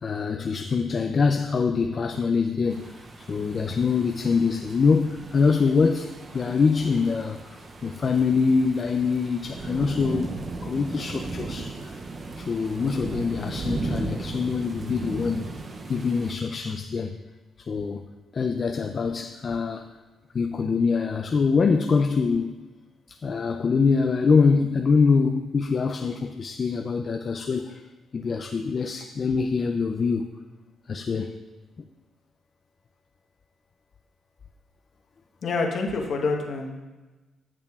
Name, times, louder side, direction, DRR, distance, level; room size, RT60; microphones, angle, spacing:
voice 1, 0.0-7.6 7.8-10.3 10.6-11.9 12.4-15.6 15.9-17.2 17.6-19.9 20.3-22.5 23.1-27.8 28.1-30.3 30.9-31.3, left 5 dB, 40° left, 5 dB, 0.3 m, -24 dB
sound 1, 2.7-16.3, right 3 dB, 35° right, 0.5 m, -36 dB
voice 2, 35.4-36.7, left 3 dB, 55° left, 2 dB, 1.0 m, -26 dB
8.4 x 6.7 x 2.3 m, 1.2 s
cardioid pair, 90°, 0 cm